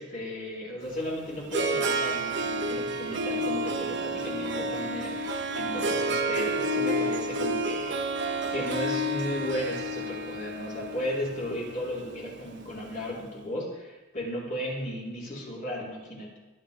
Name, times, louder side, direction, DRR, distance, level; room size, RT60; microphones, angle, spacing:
voice 1, 0.0-8.0 8.5-16.4, equal, 40° left, -5 dB, 4.1 m, -35 dB
Harp, 0.8-13.0, right 1 dB, 55° right, 1.1 m, -30 dB
21.5 x 10.5 x 3.4 m, 1.1 s
head